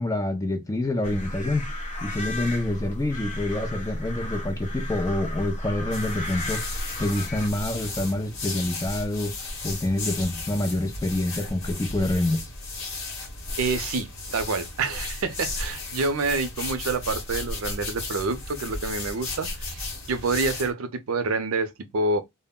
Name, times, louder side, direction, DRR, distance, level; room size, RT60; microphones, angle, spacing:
voice 1, 0.0-1.7 2.0-6.6 7.0-9.3 9.6-12.4, left 1 dB, 15° left, 0.4 m, -27 dB
Chorus of crows, 1.0-7.5, left 1 dB, 30° left, 0.8 m, -33 dB
sound 1, 5.9-20.7, left 2 dB, 60° left, 1.1 m, -34 dB
voice 2, 13.6-22.2, right 3 dB, 75° right, 0.5 m, -27 dB
2.2 x 2.0 x 3.5 m
head